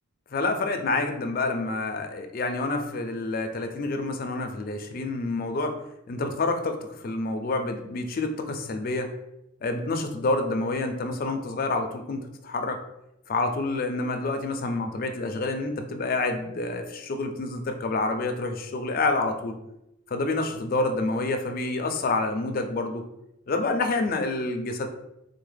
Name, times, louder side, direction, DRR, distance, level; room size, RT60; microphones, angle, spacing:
voice 1, 0.3-5.8 6.1-9.1 9.6-12.8 13.3-19.6 20.1-23.1 23.5-24.9, left 2 dB, 45° left, 5 dB, 0.4 m, -28 dB
3.5 x 2.1 x 3.3 m, 0.86 s
head